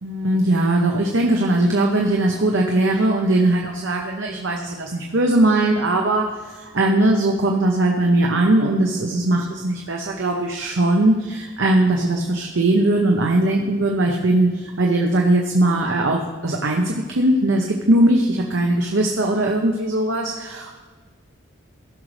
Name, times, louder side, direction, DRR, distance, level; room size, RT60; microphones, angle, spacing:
voice 1, 0.0-20.8, right 1 dB, 80° right, 1 dB, 0.9 m, -20 dB
15.5 x 6.2 x 3.3 m, 1.4 s
head